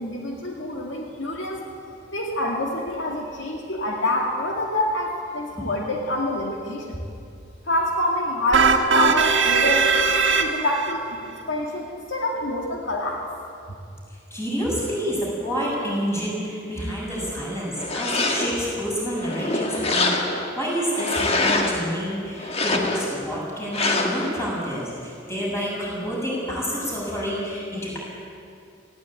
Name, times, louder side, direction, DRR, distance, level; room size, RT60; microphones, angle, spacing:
voice 1, 0.0-1.6 2.1-7.0 7.7-9.9 10.4-13.2, left 1 dB, 70° left, 0 dB, 2.1 m, -26 dB
sound 1, 8.5-10.9, right 5 dB, 65° right, 1.9 m, -19 dB
voice 2, 14.3-20.1 20.5-28.0, equal, 15° left, -5 dB, 7.5 m, -28 dB
sound 2, 17.8-18.7 19.2-20.5 20.9-21.8 22.4-23.2 23.7-24.3, left 2 dB, 30° left, 1.8 m, -24 dB
18.5 x 17.0 x 9.1 m, 2.5 s
head